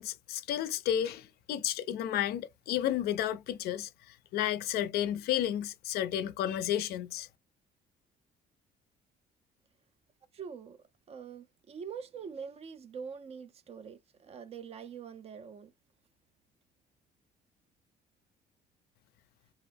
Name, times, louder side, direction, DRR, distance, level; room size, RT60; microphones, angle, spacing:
voice 1, 0.0-3.9 4.3-7.3, left 11 dB, 70° left, 0.4 m, -32 dB
voice 2, 10.3-10.8 11.1-15.7, right 6 dB, 40° right, 0.4 m, -44 dB
2.3 x 2.0 x 3.3 m
cardioid pair, 110°, 17 cm